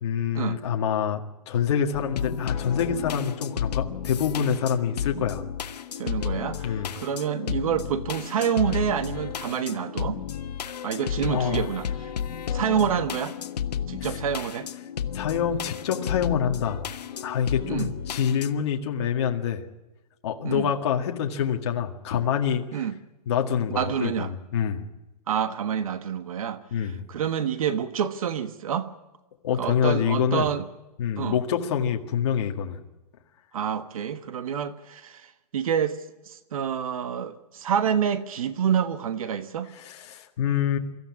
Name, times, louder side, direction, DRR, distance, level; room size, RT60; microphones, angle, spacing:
voice 1, 0.0-5.4 6.6-6.9 11.3-11.7 14.0-14.2 15.1-16.8 17.2-19.6 20.2-22.8 23.3-24.8 26.7-27.0 29.4-30.5 31.0-32.8 39.7-40.8, left 8 dB, 45° left, 2 dB, 1.9 m, -26 dB
sound 1, 1.9-18.5, left 8 dB, 85° left, 1.4 m, -32 dB
voice 2, 6.0-10.2 10.8-11.9 12.5-13.3 13.9-14.7 17.7-17.9 20.4-20.7 22.7-22.9 23.7-24.3 25.3-26.6 27.1-28.9 29.6-30.6 31.2-31.4 33.5-35.2 35.5-36.0 36.3-39.7, right 8 dB, 60° right, 12 dB, 1.4 m, -27 dB
24.5 x 14.5 x 9.6 m, 1.1 s
hypercardioid pair, 165°, 20 cm